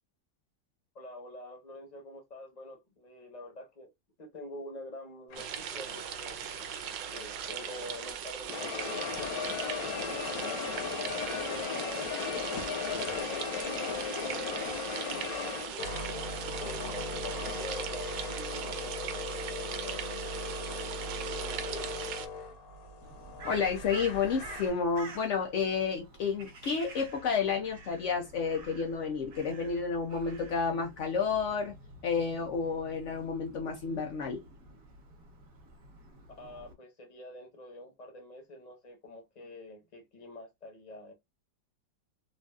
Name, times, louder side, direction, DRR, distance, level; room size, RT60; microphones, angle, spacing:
voice 1, 0.9-3.9 4.2-6.4 7.1-13.3 14.0-16.0 16.3-20.0 21.2-21.9 36.3-41.1, left 1 dB, 30° left, 0.8 m, -47 dB
sound 1, 5.3-8.1 8.5-24.7, left 5 dB, 60° left, 1.1 m, -37 dB
sound 2, 5.4-22.3, right 9 dB, 85° right, 1.3 m, -39 dB
Crow, 23.0-36.7, right 2 dB, 55° right, 1.3 m, -50 dB
voice 2, 23.4-31.7 32.0-34.4, left 5 dB, 80° left, 0.6 m, -31 dB
3.8 x 2.5 x 2.3 m
omnidirectional pair, 1.9 m